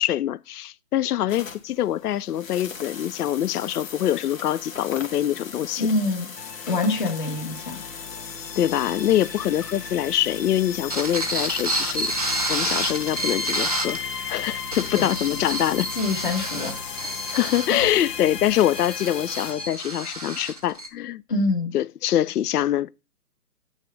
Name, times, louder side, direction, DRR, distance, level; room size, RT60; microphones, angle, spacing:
voice 1, 0.0-5.9 8.6-12.1 12.5-14.0 14.3-15.9 17.3-21.2 21.7-22.9, left 12 dB, 70° left, 0.5 m, -24 dB
sound 1, 1.3-19.5, left 6 dB, 55° left, 1.6 m, -40 dB
voice 2, 5.8-6.3 6.7-7.8 14.9-15.1 15.9-17.3 21.3-21.7, left 2 dB, 30° left, 1.5 m, -25 dB
sound 2, 6.4-19.7, left 6 dB, 90° left, 1.0 m, -37 dB
sound 3, 10.9-14.0 14.5-20.9, right 1 dB, 25° right, 0.7 m, -29 dB
8.9 x 3.5 x 5.1 m
hypercardioid pair, 170°, 47 cm